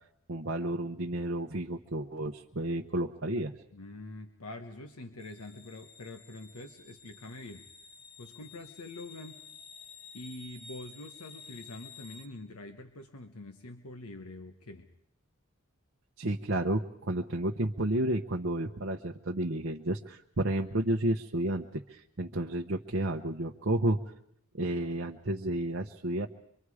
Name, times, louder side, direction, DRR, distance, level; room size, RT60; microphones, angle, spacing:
voice 1, 0.3-3.5 16.2-24.0 24.5-26.3, right 1 dB, 55° right, 3 dB, 0.9 m, -31 dB
voice 2, 3.7-7.7 8.2-9.4 10.1-14.9, left 2 dB, 85° left, 6 dB, 1.2 m, -45 dB
sound 1, 5.2-12.3, left 5 dB, 50° left, 1.5 m, -52 dB
24.5 x 24.5 x 4.9 m, 0.73 s
head